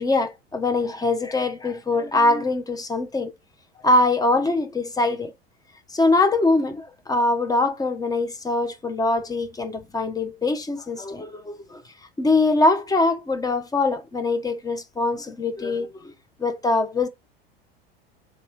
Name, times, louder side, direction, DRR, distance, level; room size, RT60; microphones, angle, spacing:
voice 1, 0.0-3.3 3.8-5.3 5.9-11.8 12.2-16.1 16.4-17.1, left 2 dB, 10° left, 0.7 m, -23 dB
3.6 x 2.9 x 2.8 m
figure-of-eight pair, 80°, 30 cm